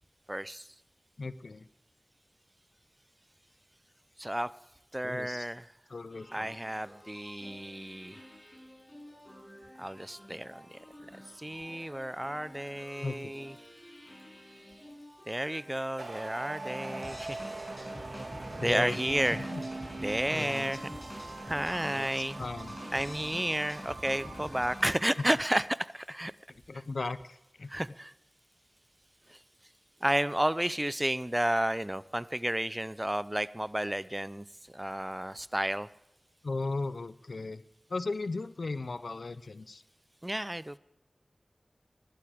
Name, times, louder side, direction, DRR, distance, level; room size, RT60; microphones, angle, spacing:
voice 1, 0.3-0.7 4.2-4.5 4.9-5.7 6.3-8.2 9.8-10.8 11.4-13.5 15.3-17.4 18.6-19.5 20.0-20.9 21.5-22.4 22.9-26.3 27.7-28.1 29.3-29.4 30.0-34.4 34.7-35.9 40.2-40.8, right 1 dB, 15° right, 17 dB, 0.5 m, -32 dB
voice 2, 1.2-1.7 5.0-5.5 5.9-6.6 13.0-13.3 18.6-19.0 19.3-19.6 20.3-20.8 21.9-22.1 22.4-22.7 26.5-27.7 36.4-37.6 37.9-39.8, left 3 dB, 80° left, 15 dB, 0.6 m, -36 dB
sound 1, 6.1-24.9, equal, 20° left, 6.3 m, -47 dB
sound 2, 16.0-25.6, right 2 dB, 80° right, 1.7 m, -42 dB
19.0 x 12.0 x 5.1 m, 0.89 s
wide cardioid pair, 50°, 0 cm